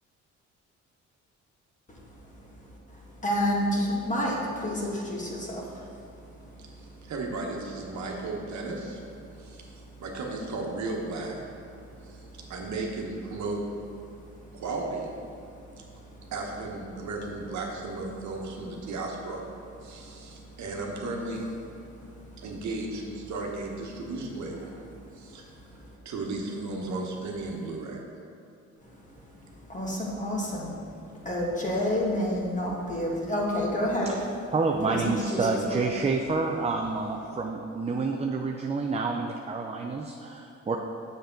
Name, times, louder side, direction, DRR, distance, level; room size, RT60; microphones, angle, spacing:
voice 1, 2.9-6.2 6.5-6.6 7.0-7.1 9.8-10.0 11.9-12.1 14.4-14.5 15.4-16.3 19.9-20.4 22.2-22.3 25.0-25.4 25.8-25.9 28.8-34.1 34.9-35.4 35.7-35.8, left 1 dB, 25° left, -3 dB, 1.7 m, -31 dB
voice 2, 7.0-9.0 9.4-9.6 10.0-11.4 12.0-13.6 14.5-15.1 16.3-19.4 19.8-21.5 22.4-24.8 25.1-25.5 26.0-28.0, right 3 dB, 70° right, 0 dB, 1.2 m, -35 dB
voice 3, 34.5-40.8, right 3 dB, 20° right, 2 dB, 0.5 m, -28 dB
7.0 x 6.7 x 3.9 m, 2.7 s
cardioid pair, 90°, 30 cm